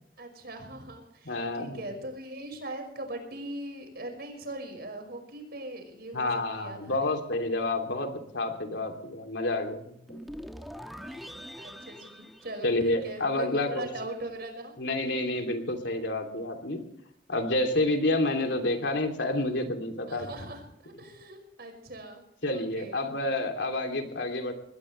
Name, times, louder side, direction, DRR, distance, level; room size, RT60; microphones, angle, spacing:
voice 1, 0.2-7.1 11.0-14.7 20.1-23.0, right 1 dB, 60° right, 5 dB, 5.5 m, -41 dB
voice 2, 1.2-1.8 6.1-10.2 12.6-13.9 14.8-16.8 17.3-20.3 22.4-24.5, left 2 dB, 80° left, 4 dB, 3.0 m, -29 dB
sound 1, 10.1-13.3, equal, ahead, 1.2 m, -43 dB
21.0 x 18.5 x 3.3 m, 0.70 s
head